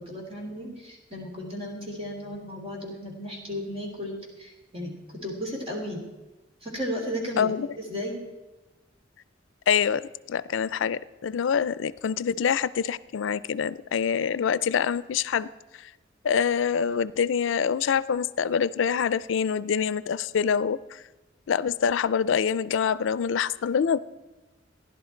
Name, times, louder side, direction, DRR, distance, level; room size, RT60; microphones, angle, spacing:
voice 1, 0.1-4.9 5.2-6.0 6.6-7.5 7.9-8.1, equal, 30° right, -1 dB, 3.2 m, -34 dB
voice 2, 7.4-7.7 9.7-15.5 16.2-20.8 21.5-24.0, left 7 dB, 90° left, 17 dB, 0.4 m, -25 dB
15.5 x 11.0 x 4.4 m, 1.1 s
head